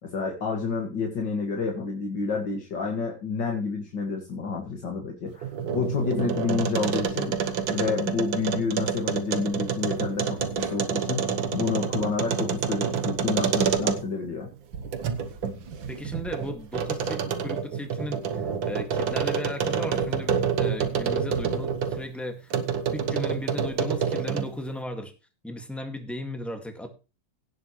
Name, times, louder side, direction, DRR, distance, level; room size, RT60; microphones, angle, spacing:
voice 1, 0.0-7.4 7.7-14.5, left 4 dB, 70° left, 1 dB, 2.7 m, -29 dB
sound 1, 5.3-14.3 14.7-22.0 22.5-24.6, right 7 dB, 90° right, 2.0 m, -28 dB
voice 2, 15.9-22.5 22.9-25.1 25.4-26.9, left 1 dB, ahead, 4 dB, 1.9 m, -36 dB
17.5 x 7.7 x 3.2 m, 0.33 s
omnidirectional pair, 2.1 m